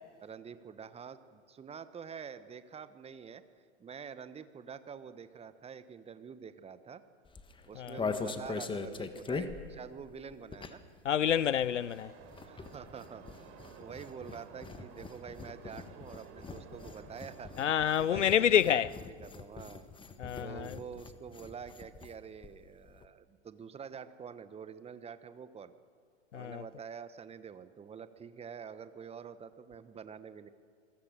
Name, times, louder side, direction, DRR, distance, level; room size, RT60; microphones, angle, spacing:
voice 1, 0.2-3.4 3.8-7.0 7.7-10.8 12.4-17.5 18.0-19.9 20.4-25.7 26.3-30.5, right 6 dB, 15° right, 1.2 m, -47 dB
sound 1, 7.3-11.0 11.2-22.2 22.4-22.5 22.7-23.1, left 4 dB, 15° left, 1.6 m, -42 dB
voice 2, 11.0-12.1 17.6-18.9 20.2-20.8 26.3-26.6, left 9 dB, 75° left, 0.7 m, -28 dB
sound 2, 11.5-18.0, right 6 dB, 40° right, 4.7 m, -54 dB
26.5 x 22.0 x 6.7 m
figure-of-eight pair, 95°, 36 cm